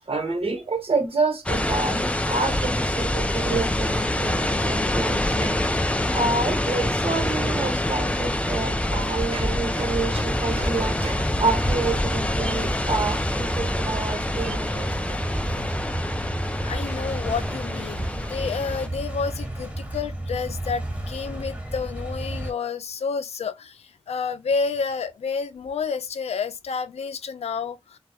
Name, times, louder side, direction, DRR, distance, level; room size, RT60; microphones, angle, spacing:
voice 1, 0.1-5.6 6.1-15.0, right 3 dB, 65° right, 1.0 m, -28 dB
sound 1, 1.5-18.9, left 1 dB, 10° left, 0.4 m, -26 dB
sound 2, 10.2-22.5, right 1 dB, 15° right, 1.4 m, -32 dB
voice 2, 16.6-28.0, left 5 dB, 85° left, 0.4 m, -30 dB
2.2 x 2.0 x 2.7 m
cardioid pair, 50°, 11 cm